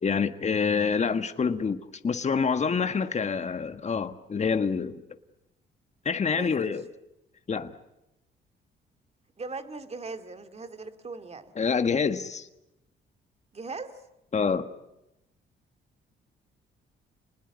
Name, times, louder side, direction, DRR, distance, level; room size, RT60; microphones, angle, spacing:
voice 1, 0.0-5.0 6.0-6.8 7.5-7.7 11.5-12.5 14.3-14.7, left 5 dB, 35° left, 9 dB, 1.5 m, -27 dB
voice 2, 6.3-6.7 9.4-11.5 13.5-14.0, right 3 dB, 30° right, 9 dB, 2.2 m, -39 dB
29.5 x 20.0 x 9.7 m, 0.93 s
cardioid pair, 90°, 20 cm